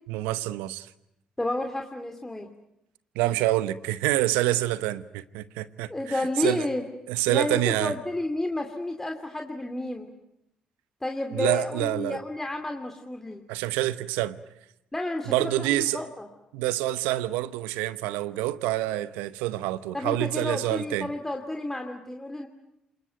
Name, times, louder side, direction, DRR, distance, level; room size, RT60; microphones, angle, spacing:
voice 1, 0.1-0.9 3.1-5.9 6.4-6.7 7.1-8.0 11.3-12.2 13.5-14.4 15.3-16.0 16.5-21.1, right 15 dB, 80° right, 0.9 m, -27 dB
voice 2, 1.4-2.5 5.9-6.8 7.3-10.1 11.0-13.4 14.9-16.3 19.9-22.5, left 2 dB, 15° left, 2.6 m, -31 dB
27.0 x 21.0 x 9.3 m
hypercardioid pair, 50°, 3 cm